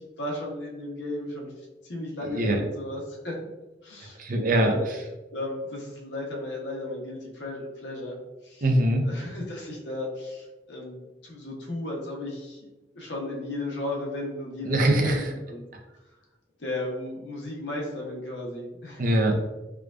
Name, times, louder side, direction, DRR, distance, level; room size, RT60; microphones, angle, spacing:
voice 1, 0.0-1.5 1.9-3.4 3.8-4.2 4.5-4.9 5.3-8.6 9.0-12.7 12.9-15.6 16.6-19.0, left 1 dB, 90° left, -2 dB, 1.0 m, -35 dB
voice 2, 2.2-2.6 4.2-5.0 8.6-9.1 14.6-15.3 19.0-19.4, right 1 dB, 50° right, 2 dB, 0.6 m, -23 dB
4.7 x 2.3 x 2.4 m, 1.1 s
head